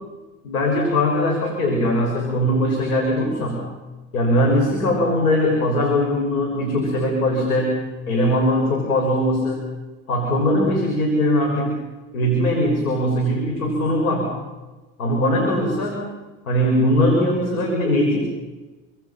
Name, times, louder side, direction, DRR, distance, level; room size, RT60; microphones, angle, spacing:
voice 1, 0.4-3.7 4.1-9.7 10.1-11.8 12.1-14.3 15.0-16.2 16.5-18.2, left 1 dB, 85° left, 0 dB, 6.3 m, -20 dB
29.5 x 25.0 x 5.9 m, 1.2 s
hypercardioid pair, 80°, 42 cm